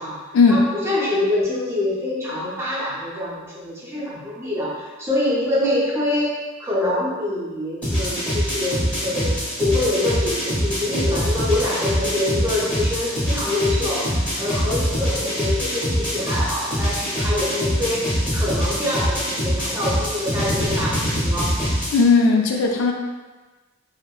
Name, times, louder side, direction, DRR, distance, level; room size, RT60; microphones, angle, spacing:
voice 1, 0.5-18.1 18.3-21.6, left 1 dB, 15° right, -7 dB, 0.6 m, -25 dB
sound 1, 7.8-22.0, equal, 5° left, 0.8 m, -24 dB
voice 2, 21.9-22.9, left 4 dB, 75° left, 1 dB, 0.3 m, -16 dB
2.7 x 2.4 x 2.3 m, 1.3 s
head